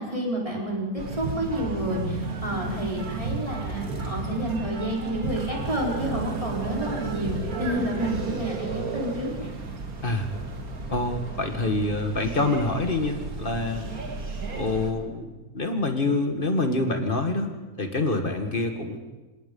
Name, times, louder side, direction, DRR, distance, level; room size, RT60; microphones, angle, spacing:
voice 1, 0.0-9.5, right 1 dB, 20° right, -2 dB, 4.8 m, -30 dB
sound 1, 1.0-14.9, right 3 dB, 75° right, 2.3 m, -33 dB
voice 2, 10.9-13.9 14.4-19.0, left 2 dB, 35° left, 6 dB, 2.0 m, -26 dB
27.5 x 18.0 x 5.5 m, 1.2 s
omnidirectional pair, 1.6 m